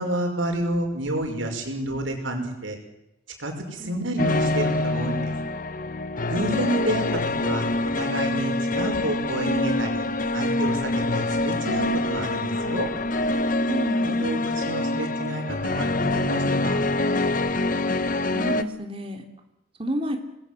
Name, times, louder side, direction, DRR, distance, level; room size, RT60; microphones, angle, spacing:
voice 1, 0.0-2.8 3.4-5.3 6.3-7.0 7.4-7.7 8.0-10.1 10.3-12.9 13.8-16.8, right 1 dB, 80° right, 3 dB, 5.9 m, -29 dB
sound 1, 4.2-18.6, left 2 dB, 45° left, 1.0 m, -25 dB
voice 2, 6.4-6.9 13.6-14.2 18.3-19.2 19.8-20.2, equal, 30° right, 4 dB, 3.1 m, -31 dB
27.0 x 20.0 x 7.8 m, 0.87 s
head